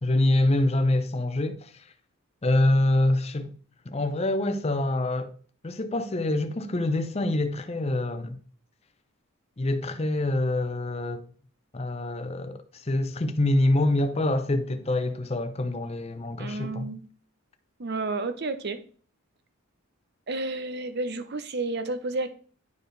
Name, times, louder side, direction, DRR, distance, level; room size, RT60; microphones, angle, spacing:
voice 1, 0.0-1.7 2.4-3.5 3.9-5.3 5.6-8.4 9.6-11.3 11.7-16.9, left 1 dB, 30° left, 0.6 m, -25 dB
voice 2, 16.4-17.0 17.8-18.8 20.3-22.3, right 3 dB, 50° right, 0.7 m, -31 dB
10.5 x 4.5 x 3.3 m
head